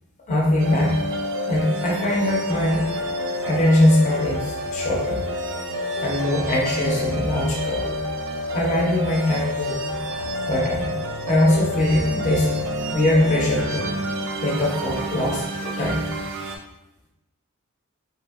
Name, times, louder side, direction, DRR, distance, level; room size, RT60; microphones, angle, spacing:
voice 1, 0.3-1.0 1.5-2.9 3.4-5.2 6.0-7.9 8.5-9.8 10.5-10.9 11.3-12.5 12.9-13.9 14.4-16.1, left 1 dB, 35° left, -3 dB, 0.6 m, -21 dB
sound 1, 0.6-16.6, equal, 65° right, 0.4 m, -28 dB
2.8 x 2.6 x 2.4 m, 0.92 s
head